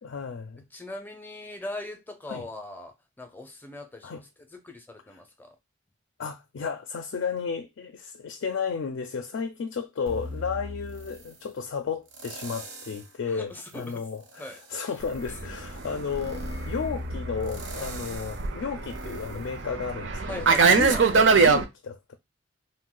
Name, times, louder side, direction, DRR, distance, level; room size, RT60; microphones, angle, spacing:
voice 1, 0.0-0.6 2.3-2.5 4.0-4.2 5.1-5.2 6.2-22.2, left 5 dB, 70° left, 0.4 m, -33 dB
voice 2, 0.7-4.2 4.5-5.6 13.3-14.0 14.4-14.9 15.4-15.5 20.3-21.0, left 2 dB, 10° left, 0.5 m, -40 dB
sound 1, 10.1-11.5 12.1-13.1 13.6-20.3 20.8-20.9, left 1 dB, 85° right, 0.9 m, -40 dB
Fixed-wing aircraft airplane, 15.1-21.6, right 4 dB, 70° right, 0.5 m, -23 dB
2.6 x 2.1 x 3.7 m
head